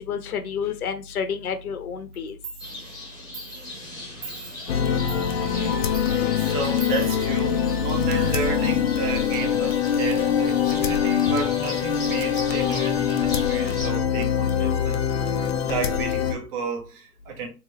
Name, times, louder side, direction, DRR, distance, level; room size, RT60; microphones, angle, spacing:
voice 1, 0.1-2.3, left 7 dB, 60° left, 0.9 m, -29 dB
Clock, 2.1-2.2 2.4-8.1, right 6 dB, 10° right, 0.6 m, -43 dB
sound 1, 2.6-13.9, left 2 dB, 10° left, 1.1 m, -39 dB
voice 2, 4.1-4.6 5.1-15.1 15.6-17.5, right 5 dB, 35° right, 1.3 m, -33 dB
sound 2, 4.7-16.3, left 8 dB, 40° left, 0.5 m, -23 dB
3.5 x 2.9 x 3.0 m
figure-of-eight pair, 125°, 49 cm